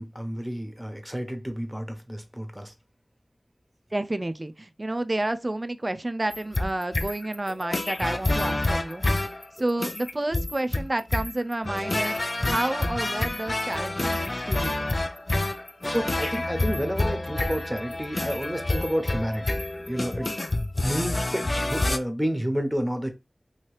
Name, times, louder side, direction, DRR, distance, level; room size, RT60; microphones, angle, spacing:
voice 1, 0.0-2.7 15.8-19.6 19.9-20.3 20.8-23.1, equal, 5° right, 0.8 m, -30 dB
voice 2, 3.9-9.0 9.6-12.2 12.4-14.7, right 1 dB, 35° right, 0.4 m, -30 dB
sound 1, 6.3-22.0, left 2 dB, 45° left, 0.4 m, -28 dB
2.9 x 2.7 x 3.2 m
wide cardioid pair, 50°, 0 cm